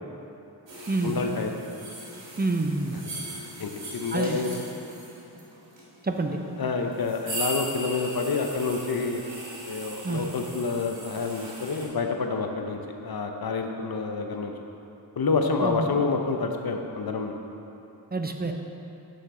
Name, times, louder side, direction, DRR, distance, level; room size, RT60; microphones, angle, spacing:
sound 1, 0.7-11.9, right 1 dB, 80° right, 1.5 m, -39 dB
voice 1, 1.0-1.5 3.6-4.6 6.6-9.2 9.6-14.5 15.2-17.4, left 4 dB, 55° left, 4 dB, 0.7 m, -28 dB
voice 2, 2.4-3.0 4.1-4.4 6.0-6.4 10.0-10.2 15.6-15.9 18.1-18.5, right 3 dB, 20° right, 4 dB, 0.6 m, -27 dB
6.8 x 6.4 x 3.7 m, 2.8 s
cardioid pair, 45°, 44 cm